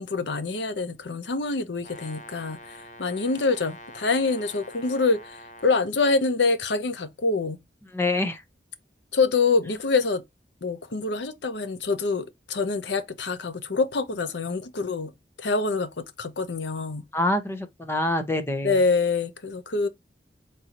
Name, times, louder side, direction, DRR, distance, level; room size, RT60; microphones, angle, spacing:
voice 1, 0.0-7.6 9.1-10.2 10.6-15.1 15.4-17.0 18.6-19.9, left 4 dB, 85° left, 0.7 m, -26 dB
Brass instrument, 1.8-5.9, left 1 dB, 50° left, 0.8 m, -45 dB
voice 2, 7.9-8.4 17.1-18.8, left 1 dB, 15° left, 0.6 m, -26 dB
4.2 x 3.8 x 2.8 m
head